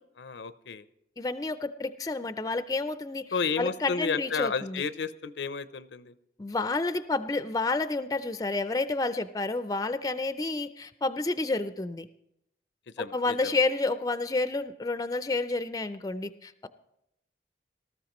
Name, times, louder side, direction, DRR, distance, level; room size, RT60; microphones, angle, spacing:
voice 1, 0.2-0.8 3.3-6.1 13.0-13.6, left 5 dB, 90° left, 14 dB, 0.6 m, -32 dB
voice 2, 1.2-4.8 6.4-12.1 13.0-16.7, left 3 dB, 20° left, 12 dB, 0.4 m, -30 dB
18.5 x 13.5 x 3.0 m, 0.80 s
head